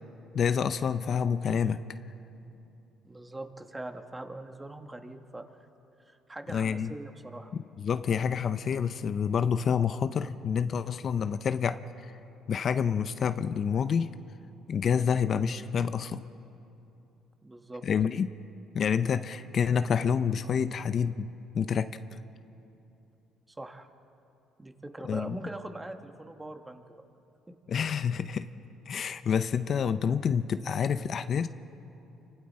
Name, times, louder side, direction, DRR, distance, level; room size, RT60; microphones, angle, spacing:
voice 1, 0.3-1.8 6.5-6.9 7.8-12.1 12.5-14.1 14.7-16.3 17.8-18.3 18.7-21.3 21.5-22.0 25.0-25.4 27.7-28.5 28.9-31.5, left 7 dB, 50° left, 11 dB, 0.6 m, -28 dB
voice 2, 3.0-5.4 6.1-7.5 17.4-17.8 23.5-23.9 24.6-27.0 27.5-27.6, right 2 dB, 15° right, 6 dB, 1.5 m, -42 dB
29.0 x 25.0 x 4.3 m, 2.8 s
cardioid pair, 100°, 0 cm